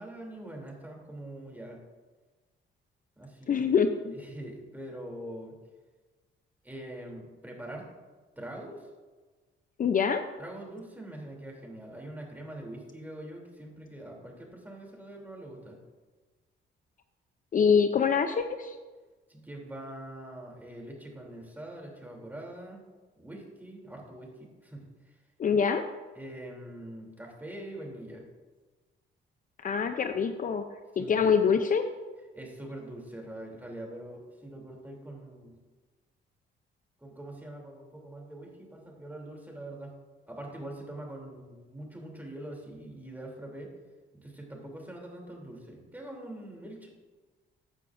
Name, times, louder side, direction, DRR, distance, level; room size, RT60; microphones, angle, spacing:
voice 1, 0.0-1.8 3.2-3.6 4.1-5.5 6.6-7.9 8.3-8.9 10.4-15.8 19.3-22.8 23.2-25.2 26.1-28.2 30.9-31.3 32.3-35.6 37.0-40.0 40.3-43.7 44.1-46.9, right 1 dB, 10° right, 0 dB, 3.0 m, -43 dB
voice 2, 3.5-4.1 9.8-10.2 17.5-18.8 25.4-25.8 29.6-30.6 31.0-31.9, left 6 dB, 45° left, 7 dB, 0.6 m, -25 dB
14.0 x 9.7 x 2.6 m, 1.3 s
cardioid pair, 90°, 20 cm